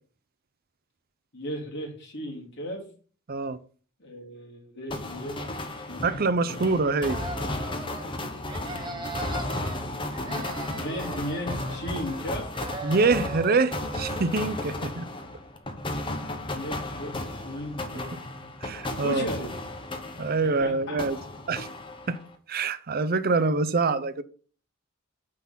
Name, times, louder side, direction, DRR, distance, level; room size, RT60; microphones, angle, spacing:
voice 1, 1.3-2.8 4.0-5.4 5.7-6.6 8.7-9.2 10.2-10.5 10.7-12.5 16.5-18.2 19.0-19.5 20.6-21.3, equal, 60° left, 2.9 m, -36 dB
sound 1, 4.9-20.6 21.0-22.3, left 1 dB, 25° left, 1.0 m, -34 dB
voice 2, 6.0-7.2 12.8-15.1 18.6-19.3 20.2-21.2 21.5-21.7 22.1-22.2 22.5-24.2, right 3 dB, 45° right, 0.6 m, -25 dB
sound 2, 6.9-8.1 8.4-9.8 10.1-12.3 12.5-14.5, right 2 dB, 20° right, 1.0 m, -39 dB
9.4 x 3.9 x 5.8 m
head